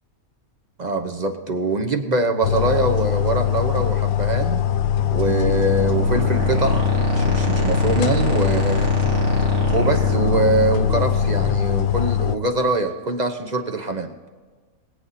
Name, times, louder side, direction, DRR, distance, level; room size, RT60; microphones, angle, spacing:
voice 1, 0.8-4.6 5.1-8.9 9.7-14.1, right 2 dB, 35° right, 5 dB, 1.0 m, -23 dB
sound 1, 2.4-12.4, left 12 dB, 80° left, 1.1 m, -22 dB
sound 2, 4.0-12.8, right 3 dB, 55° right, 2.1 m, -26 dB
21.0 x 9.2 x 4.3 m, 1.4 s
omnidirectional pair, 1.5 m